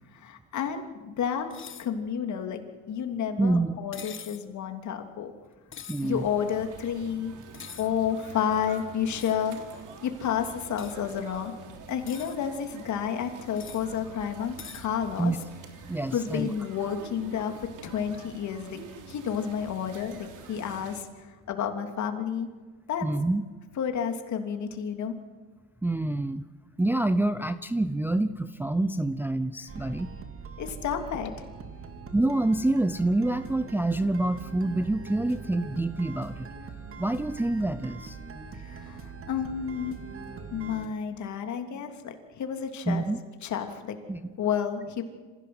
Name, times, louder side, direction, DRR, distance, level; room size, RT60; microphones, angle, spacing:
voice 1, 0.2-1.5 1.8-2.6 2.9-5.3 6.0-7.3 7.8-9.6 10.0-11.5 11.9-15.3 16.1-17.5 17.8-18.8 19.1-22.5 22.9-23.1 23.8-25.1 30.6-31.3 38.6-40.0 40.5-43.0 43.4-44.0 44.4-45.0, left 8 dB, 50° left, 5 dB, 3.2 m, -31 dB
sound 1, 1.5-1.9 3.9-4.5 5.7-6.1 7.5-7.9 9.2-9.4 10.8-11.0 11.9-12.4 13.6-13.9 14.6-14.9, left 8 dB, 35° left, 1.4 m, -43 dB
voice 2, 3.4-3.8 5.9-6.3 15.2-15.4 15.9-16.5 23.0-23.4 25.8-26.4 26.8-30.1 32.1-36.5 37.0-38.2 42.9-43.2 44.1-44.3, right 2 dB, 5° right, 10 dB, 0.6 m, -27 dB
sound 2, 6.0-21.0, right 6 dB, 55° right, 3.5 m, -47 dB
sound 3, 29.7-40.9, right 4 dB, 35° right, 2.5 m, -42 dB
26.5 x 16.0 x 7.9 m, 1.4 s
cardioid pair, 110°, 36 cm